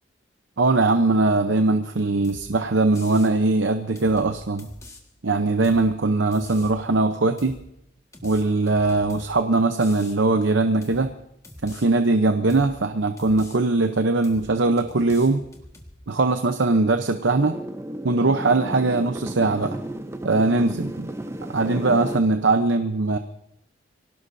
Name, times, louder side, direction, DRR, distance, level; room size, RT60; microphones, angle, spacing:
voice 1, 0.6-4.7 5.2-7.6 8.2-11.1 11.6-15.4 16.1-17.5 18.0-19.8 20.2-21.1 21.5-23.2, right 3 dB, 75° right, 7 dB, 0.8 m, -21 dB
sound 1, 2.2-2.5 2.9-3.3 4.0-5.0 5.6-5.9 6.3-6.8 7.4-7.7 8.1-9.4 9.8-10.2 10.8-11.1 11.4-11.9 12.5-12.8 13.2-13.6 14.2-14.5 14.8-15.9, left 1 dB, 15° left, 1.7 m, -45 dB
sound 2, 17.2-22.2, right 1 dB, 15° right, 0.7 m, -33 dB
25.5 x 17.5 x 2.7 m, 0.81 s
head